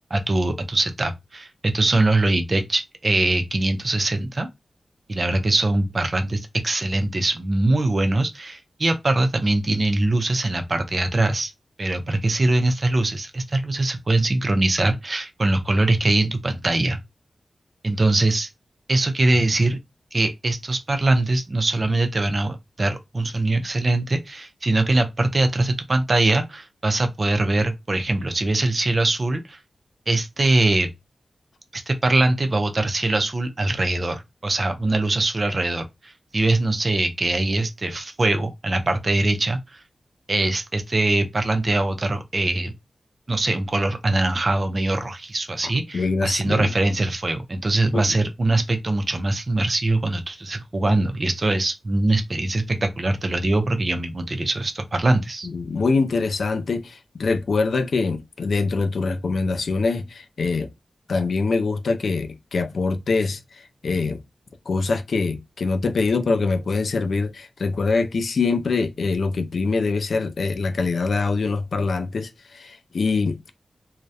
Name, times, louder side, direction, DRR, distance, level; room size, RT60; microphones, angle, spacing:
voice 1, 0.1-4.5 5.1-11.5 11.8-17.0 17.8-18.5 18.9-19.8 20.1-29.6 30.1-30.9 31.7-39.8 40.3-42.7 43.3-55.5, right 2 dB, 40° right, 0.4 m, -22 dB
voice 2, 45.6-46.7 47.9-48.2 55.4-60.7 61.1-63.4 63.8-64.2 64.7-73.5, left 4 dB, 75° left, 0.3 m, -24 dB
2.3 x 2.0 x 2.6 m
wide cardioid pair, 105°, 0 cm